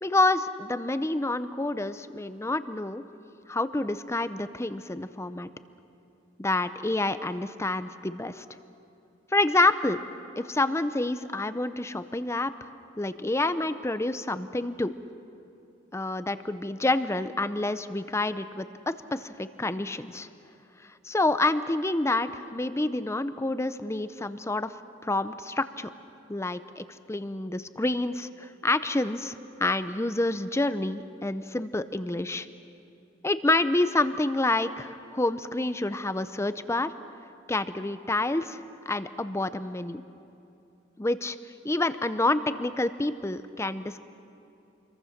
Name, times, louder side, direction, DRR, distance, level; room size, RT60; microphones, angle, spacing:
voice 1, 0.0-3.0 3.5-5.5 6.4-8.4 9.3-10.0 10.4-12.5 13.0-14.9 15.9-20.3 21.0-24.7 25.0-25.9 26.3-32.5 33.2-36.9 37.5-40.0 41.0-41.4 41.6-44.0, left 2 dB, 15° left, 12 dB, 0.6 m, -28 dB
27.5 x 22.5 x 6.6 m, 2.8 s
head